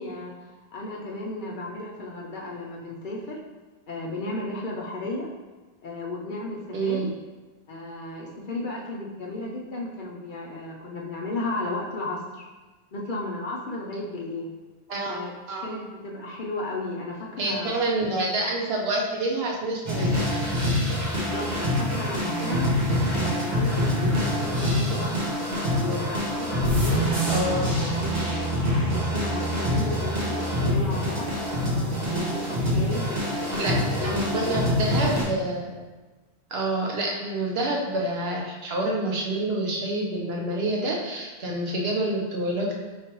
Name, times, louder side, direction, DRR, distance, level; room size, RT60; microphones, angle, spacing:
voice 1, 0.0-3.4 3.9-5.3 5.8-7.1 7.7-12.5 12.9-14.5 15.1-15.3 15.6-17.8 21.1-22.8 23.2-25.3 25.7-31.3 32.1-34.6, left 2 dB, 55° left, -2 dB, 0.7 m, -34 dB
voice 2, 6.7-7.1 14.9-15.1 15.5-15.7 17.4-20.2 27.3-27.7 33.5-35.8 36.5-42.8, right 1 dB, 65° right, -2 dB, 1.0 m, -27 dB
sound 1, 19.9-35.2, equal, 40° right, 1.1 m, -25 dB
4.7 x 3.3 x 3.0 m, 1.2 s
omnidirectional pair, 1.1 m